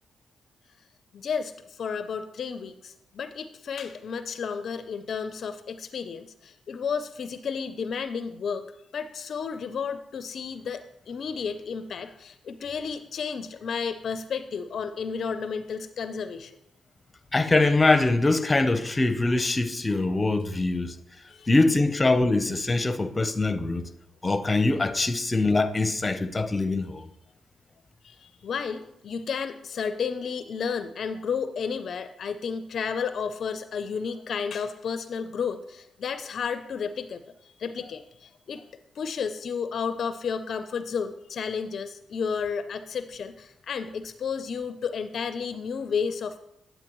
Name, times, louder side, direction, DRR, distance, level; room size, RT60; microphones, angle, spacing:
voice 1, 1.1-8.7 8.9-16.5 21.3-21.5 28.0-38.6 39.0-46.4, left 6 dB, 65° left, 0.4 m, -32 dB
voice 2, 17.3-20.9 21.5-23.9 24.2-27.0, left 2 dB, 25° left, 0.7 m, -23 dB
9.0 x 8.9 x 3.0 m
supercardioid pair, 60°, 0 cm